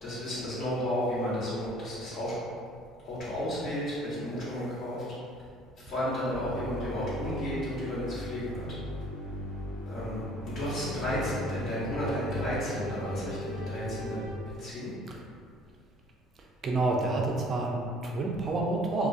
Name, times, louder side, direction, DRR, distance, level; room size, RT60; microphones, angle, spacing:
voice 1, 0.0-2.4 3.0-5.1 5.8-8.6 9.9-14.2 14.5-14.9, equal, 50° left, -10 dB, 1.2 m, -33 dB
sound 1, 6.3-14.3, equal, 85° left, 0.5 m, -38 dB
voice 2, 16.6-19.1, right 2 dB, 40° right, -1 dB, 0.4 m, -29 dB
2.3 x 2.3 x 2.4 m, 2.3 s
hypercardioid pair, 65°, 0 cm